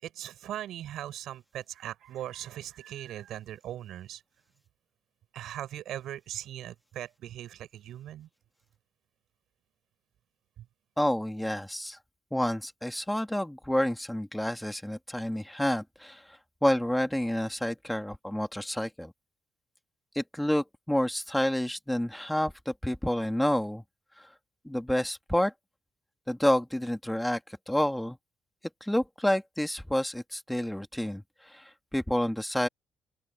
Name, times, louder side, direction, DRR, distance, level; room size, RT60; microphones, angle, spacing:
voice 1, 0.0-4.2 5.3-8.3 10.6-10.7, right 12 dB, 80° right, 5.7 m, -39 dB
voice 2, 11.0-12.0 12.3-19.1 20.1-23.8 24.2-24.3 24.6-25.5 26.3-27.4 27.7-28.2 28.8-32.7, left 1 dB, 5° left, 2.1 m, -29 dB
open air
cardioid pair, 90°, 0 cm